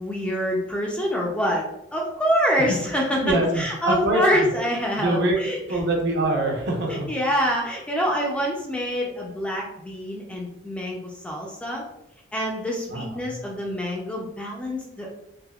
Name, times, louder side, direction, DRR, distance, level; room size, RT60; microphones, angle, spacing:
voice 1, 0.0-5.8 6.9-11.8 12.3-15.3, equal, 5° left, -2 dB, 0.3 m, -26 dB
voice 2, 3.1-4.2 5.0-5.4 5.7-7.1 12.9-13.3, right 1 dB, 55° right, 0 dB, 0.7 m, -24 dB
3.4 x 2.6 x 2.2 m, 0.85 s
head